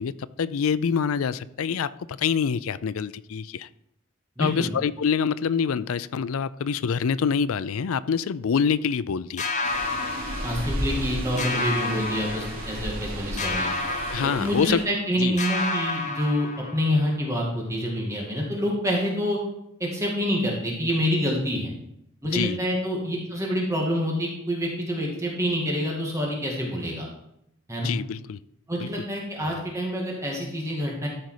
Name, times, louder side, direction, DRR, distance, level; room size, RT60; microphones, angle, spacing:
voice 1, 0.0-3.7 4.4-9.5 14.1-14.8 15.1-15.4 22.3-22.6 27.8-28.4 28.8-28.9, left 6 dB, 85° left, 17 dB, 0.4 m, -26 dB
voice 2, 4.4-4.7 10.4-13.7 14.2-19.4 19.8-21.7 22.2-27.1 27.7-27.9 28.7-31.1, equal, 15° right, -2 dB, 2.0 m, -27 dB
sound 1, 9.4-11.1 11.4-13.0 13.4-15.1 15.4-17.1, left 3 dB, 35° left, 0.9 m, -30 dB
sound 2, 9.6-14.8, right 1 dB, 85° right, 3.1 m, -34 dB
13.0 x 5.3 x 4.8 m, 0.78 s
head